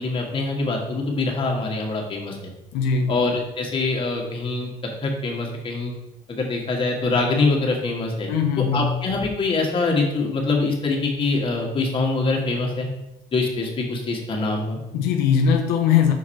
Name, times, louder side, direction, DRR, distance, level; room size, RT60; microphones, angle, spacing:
voice 1, 0.0-2.5 3.1-4.7 5.0-5.9 6.3-8.3 8.7-12.9 13.3-14.8, left 3 dB, 35° left, 0 dB, 1.6 m, -24 dB
voice 2, 2.7-3.1 8.3-9.0 14.9-16.1, left 7 dB, 90° left, 3 dB, 0.7 m, -20 dB
6.0 x 4.7 x 4.4 m, 0.88 s
cardioid pair, 115°, 15 cm